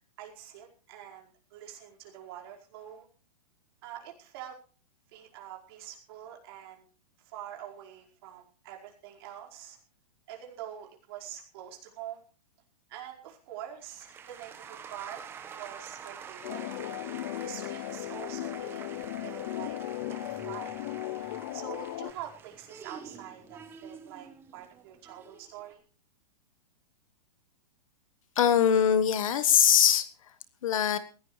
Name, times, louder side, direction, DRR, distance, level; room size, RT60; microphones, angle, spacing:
voice 1, 0.2-3.1 3.8-4.6 5.1-6.8 7.2-9.8 10.3-12.2 12.9-15.2 15.5-16.7 17.4-19.8 20.1-20.7 21.2-25.8, right 11 dB, 35° right, 0 dB, 5.0 m, -45 dB
sound 1, 13.8-25.7, right 7 dB, 10° right, 1.3 m, -47 dB
sound 2, 16.4-22.1, left 14 dB, 30° left, 0.6 m, -36 dB
voice 2, 28.4-30.1 30.6-31.0, left 9 dB, 55° left, 13 dB, 1.5 m, -22 dB
21.0 x 16.5 x 3.3 m, 0.38 s
hypercardioid pair, 175°, 21 cm